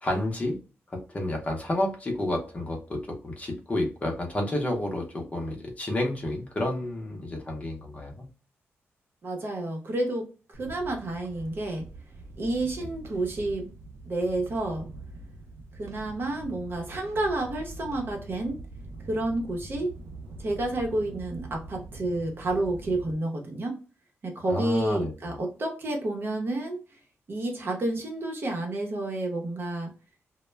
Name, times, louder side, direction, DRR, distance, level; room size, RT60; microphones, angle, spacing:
voice 1, 0.0-0.6 0.9-8.3 24.5-25.4, left 1 dB, 30° left, 1 dB, 0.7 m, -30 dB
voice 2, 9.2-11.9 12.4-13.7 14.1-14.9 15.7-18.6 19.1-19.9 20.4-23.8 24.2-26.8 27.3-29.9, right 2 dB, 50° right, 1 dB, 0.8 m, -30 dB
sound 1, 10.5-23.1, right 2 dB, 75° right, 0.4 m, -44 dB
2.1 x 2.1 x 3.2 m, 0.34 s
wide cardioid pair, 105°, 5 cm